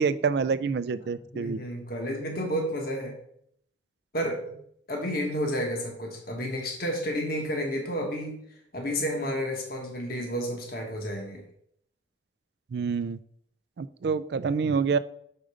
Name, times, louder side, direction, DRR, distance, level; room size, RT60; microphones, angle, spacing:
voice 1, 0.0-1.6 12.7-13.2 13.8-15.0, right 5 dB, 55° right, 14 dB, 0.3 m, -27 dB
voice 2, 1.3-3.1 4.1-4.5 4.9-8.4 8.7-11.4, equal, 50° left, 1 dB, 1.4 m, -31 dB
6.4 x 5.1 x 4.9 m, 0.69 s
head